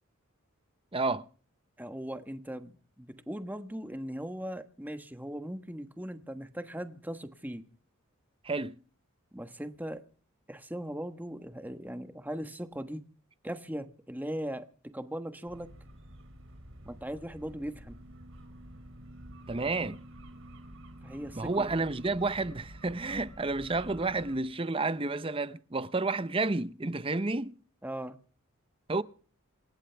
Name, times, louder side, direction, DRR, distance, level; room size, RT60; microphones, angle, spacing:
voice 1, 0.9-1.2 8.4-8.8 19.5-20.0 21.4-27.6 28.9-29.0, right 3 dB, 25° right, 0.7 m, -30 dB
voice 2, 1.8-7.6 9.3-10.0 10.5-13.0 13.4-14.7 14.9-15.7 16.8-18.0 21.0-21.8 27.8-28.1, equal, 10° right, 1.3 m, -39 dB
sound 1, 15.5-24.4, right 1 dB, 60° right, 3.8 m, -49 dB
28.0 x 14.0 x 3.4 m
head